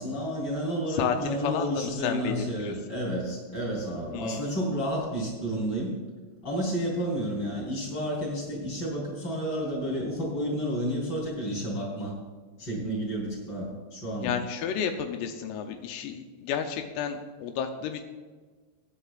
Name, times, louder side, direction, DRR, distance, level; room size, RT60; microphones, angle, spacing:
voice 1, 0.0-5.9 6.4-12.1 12.6-14.4, equal, 25° left, -4 dB, 3.7 m, -31 dB
voice 2, 0.9-2.7 4.1-4.5 14.2-18.0, left 8 dB, 85° left, 6 dB, 3.4 m, -31 dB
22.5 x 10.0 x 2.5 m, 1.4 s
omnidirectional pair, 5.8 m